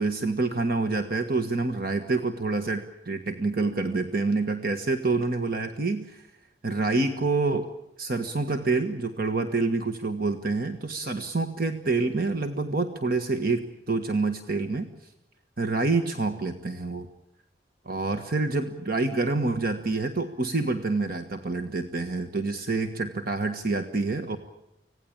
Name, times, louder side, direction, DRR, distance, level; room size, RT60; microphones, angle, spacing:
voice 1, 0.0-6.2 6.6-7.7 8.0-14.9 15.6-17.1 17.8-24.4, right 3 dB, 55° right, 8 dB, 1.5 m, -27 dB
25.5 x 17.5 x 8.7 m, 0.90 s
head